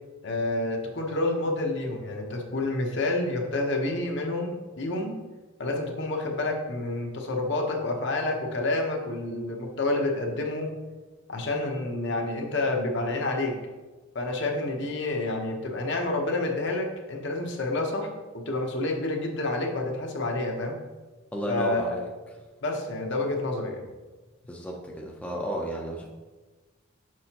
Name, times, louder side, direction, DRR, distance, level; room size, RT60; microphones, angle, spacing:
voice 1, 0.2-5.1 5.6-10.7 11.3-13.6 14.1-20.8 21.5-22.0 22.6-23.9, left 2 dB, 60° left, 1 dB, 1.0 m, -29 dB
voice 2, 21.3-22.1 24.5-26.1, equal, 5° left, -2 dB, 0.6 m, -33 dB
6.2 x 6.1 x 2.9 m, 1.3 s
head